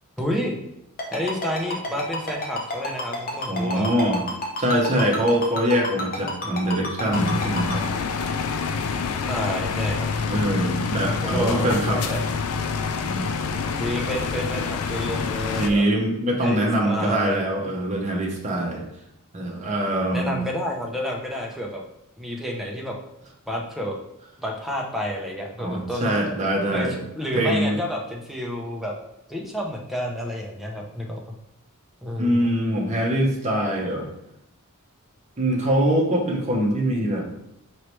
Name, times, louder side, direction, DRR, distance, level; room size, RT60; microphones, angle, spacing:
voice 1, 0.2-0.6 1.1-3.9 9.3-10.1 11.2-11.7 11.9-12.2 13.8-15.8 16.4-17.4 20.1-21.8 22.2-23.0 23.5-24.0 24.4-26.1 26.7-26.9 27.1-28.9 29.3-31.2 32.0-32.5, equal, ahead, -1 dB, 0.6 m, -29 dB
Ringtone, 1.0-7.7, left 1 dB, 40° left, 0.8 m, -29 dB
voice 2, 3.5-4.2 4.6-7.8 10.3-12.0 13.0-13.2 15.6-18.8 19.3-20.4 25.6-27.0 27.3-27.8 32.2-34.1 35.4-37.2, right 1 dB, 35° right, -1 dB, 0.8 m, -23 dB
sound 1, 7.1-15.7, left 5 dB, 75° left, 0.4 m, -27 dB
4.6 x 3.1 x 3.1 m, 0.84 s
head